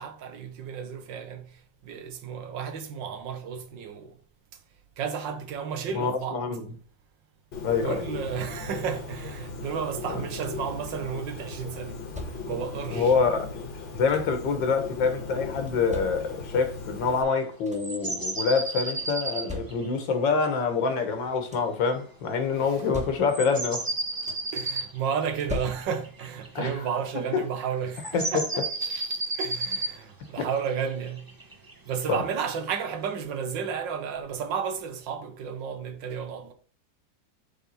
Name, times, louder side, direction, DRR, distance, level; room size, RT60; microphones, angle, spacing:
voice 1, 0.0-4.2 4.5-4.6 5.0-6.4 7.8-12.0 12.3-13.1 22.6-22.8 24.5-31.4 31.9-36.5, right 7 dB, 75° right, 1.7 m, -33 dB
voice 2, 5.9-6.6 7.6-8.0 12.9-23.9 26.6-26.7 27.3-27.4 28.1-28.3 30.4-30.5 32.1-32.2, left 5 dB, 75° left, 1.9 m, -26 dB
Bird, 7.5-17.2, left 4 dB, 90° left, 2.3 m, -38 dB
sound 1, 10.3-10.8 11.7-12.7 13.6-14.5 15.4-16.6 17.2-17.3 17.5-18.1 19.0-20.2 21.1-21.9 22.6-23.6 23.9-24.6 25.3-26.3 27.6-27.7 28.2-28.4, left 2 dB, 5° right, 1.1 m, -41 dB
sound 2, 17.7-19.9 23.3-26.6 27.9-29.9 30.9-32.1 33.2-33.3, right 2 dB, 25° right, 0.4 m, -32 dB
8.0 x 3.8 x 4.1 m
omnidirectional pair, 2.0 m